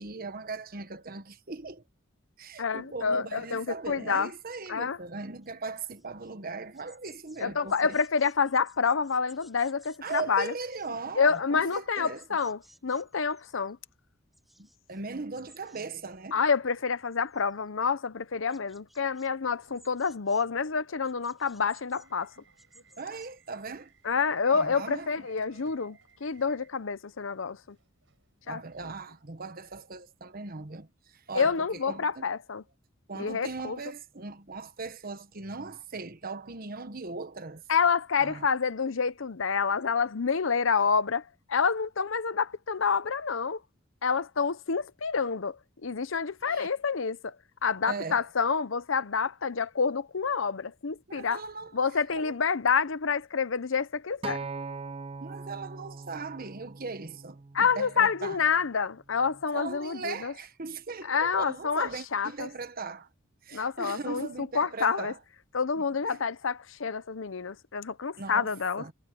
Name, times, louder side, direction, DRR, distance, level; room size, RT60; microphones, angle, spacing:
voice 1, 0.0-1.8 2.4-8.0 10.0-12.2 14.6-16.4 23.0-23.9 24.5-25.9 28.5-32.3 33.1-37.6 38.2-38.5 46.4-46.7 47.8-48.3 51.1-51.8 52.1-52.3 55.2-58.4 59.5-63.1 63.4-65.2 65.8-66.2 68.2-68.9, right 4 dB, 45° right, 1.3 m, -39 dB
voice 2, 2.6-4.3 4.7-5.0 7.4-10.5 11.2-13.8 16.3-22.3 24.0-27.8 28.5-28.6 31.3-32.6 33.1-33.8 37.7-41.2 41.5-43.6 44.0-45.6 45.8-47.3 47.6-51.4 51.7-54.4 57.5-60.3 61.0-62.5 63.5-65.1 65.5-68.8, left 5 dB, 70° left, 0.7 m, -28 dB
sound 1, 5.4-6.3 6.6-13.7 14.0-15.0 15.3-15.9 16.1-16.7 17.1-17.7 18.2-19.3 19.6-20.5 21.0-23.3, equal, ahead, 6.4 m, -60 dB
Subway metro underground / Alarm, 19.2-29.0, right 4 dB, 65° right, 7.8 m, -63 dB
Acoustic guitar, 54.2-58.5 59.3-59.4, right 4 dB, 25° right, 0.4 m, -41 dB
head